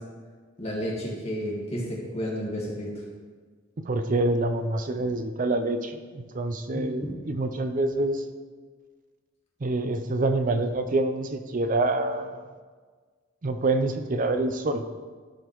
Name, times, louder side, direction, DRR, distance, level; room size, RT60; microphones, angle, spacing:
voice 1, 0.6-3.0 6.7-7.2, equal, 30° left, -4 dB, 1.7 m, -32 dB
voice 2, 3.8-8.2 9.6-12.4 13.4-14.8, right 2 dB, 40° right, 8 dB, 0.5 m, -26 dB
13.0 x 5.1 x 3.1 m, 1.5 s
head